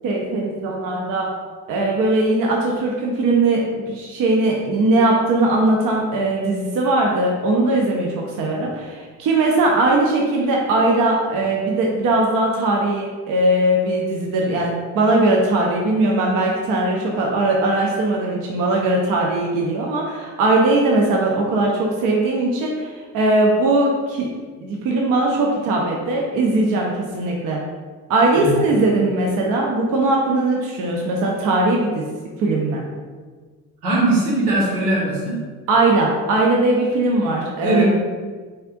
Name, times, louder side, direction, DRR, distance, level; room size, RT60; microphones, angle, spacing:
voice 1, 0.0-1.3 1.7-24.3 24.6-27.6 28.1-32.1 32.4-32.8 35.7-37.8, right 2 dB, 45° right, -1 dB, 0.7 m, -19 dB
voice 2, 33.8-35.4 37.6-37.8, right 2 dB, 80° right, -6 dB, 1.5 m, -19 dB
4.2 x 3.7 x 2.5 m, 1.5 s
figure-of-eight pair, 55°, 44 cm